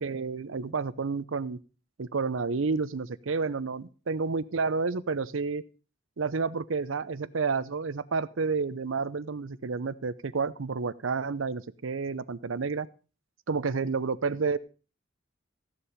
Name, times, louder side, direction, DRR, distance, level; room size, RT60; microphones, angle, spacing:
voice 1, 0.0-1.6 2.0-5.6 6.2-12.9 13.5-14.6, right 4 dB, 90° right, 17 dB, 0.6 m, -30 dB
14.5 x 7.1 x 5.1 m, 0.35 s
head